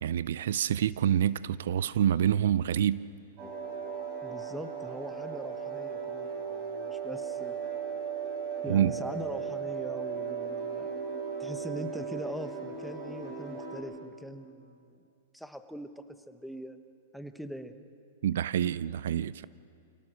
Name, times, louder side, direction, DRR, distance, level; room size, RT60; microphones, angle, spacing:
voice 1, 0.0-3.0 8.7-8.9 18.2-19.4, right 10 dB, 75° right, 0.5 m, -27 dB
sound 1, 3.4-13.8, right 6 dB, 40° right, 6.5 m, -36 dB
voice 2, 4.2-7.6 8.6-10.9 11.4-15.0 15.3-16.8 17.1-17.7, equal, ahead, 1.1 m, -42 dB
28.5 x 17.5 x 6.4 m
hypercardioid pair, 135°, 0 cm